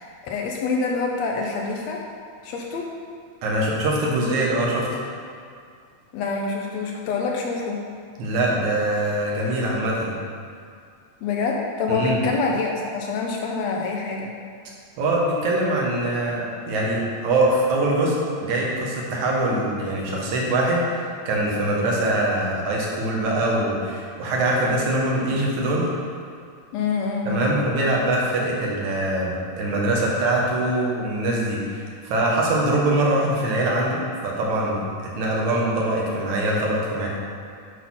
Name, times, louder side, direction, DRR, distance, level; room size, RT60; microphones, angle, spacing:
voice 1, 0.0-2.0 2.4-2.9 6.1-7.9 11.2-14.3 26.7-27.5 36.1-36.4, left 4 dB, 80° left, 0 dB, 1.6 m, -26 dB
voice 2, 3.4-4.9 8.2-10.1 11.9-12.2 15.0-25.9 27.3-34.9 35.2-37.1, right 1 dB, 70° right, -3 dB, 2.5 m, -23 dB
8.3 x 4.2 x 5.7 m, 2.2 s
omnidirectional pair, 3.7 m